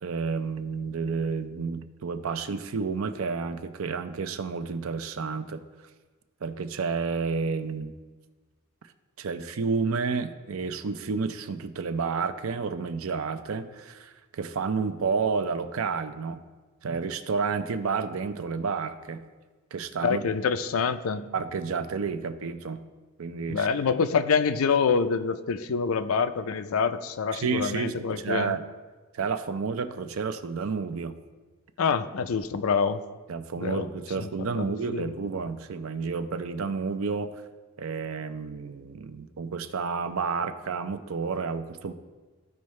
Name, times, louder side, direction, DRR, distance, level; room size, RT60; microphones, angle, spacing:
voice 1, 0.0-5.6 6.4-7.9 9.2-16.4 16.8-19.2 19.7-20.3 21.3-22.8 23.2-23.7 27.3-28.6 29.1-31.2 33.3-37.3 37.8-41.9, right 5 dB, 80° right, 10 dB, 0.5 m, -30 dB
voice 2, 20.0-21.3 23.5-28.6 31.8-33.0 33.6-33.9 34.2-34.3 34.6-34.7 34.9-35.1, left 5 dB, 90° left, 11 dB, 0.4 m, -26 dB
13.5 x 4.6 x 3.2 m, 1.3 s
head